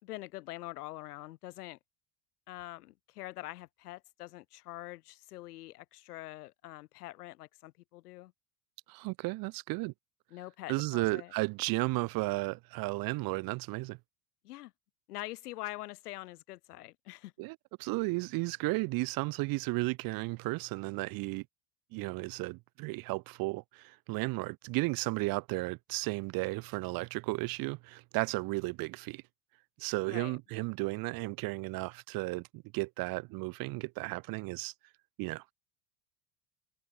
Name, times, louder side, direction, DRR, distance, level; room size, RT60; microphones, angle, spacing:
voice 1, 0.0-1.8 2.5-8.3 10.3-11.3 14.4-14.7 15.1-17.3 30.1-30.4, left 17 dB, 75° left, 4.5 m, -44 dB
voice 2, 8.9-9.9 10.7-14.0 17.4-21.4 21.9-29.2 29.8-34.7 35.2-35.5, right 24 dB, 50° right, 0.8 m, -34 dB
hypercardioid pair, 95°, 46 cm